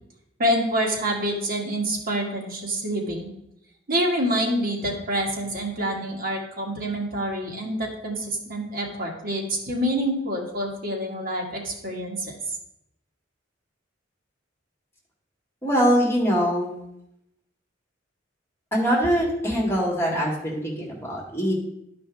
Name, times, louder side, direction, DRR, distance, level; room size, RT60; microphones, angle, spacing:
voice 1, 0.4-3.3 3.9-12.4, equal, 50° right, -1 dB, 1.8 m, -27 dB
voice 2, 15.6-16.8 18.7-21.5, equal, 15° left, -3 dB, 2.0 m, -23 dB
11.5 x 5.1 x 3.5 m, 0.80 s
head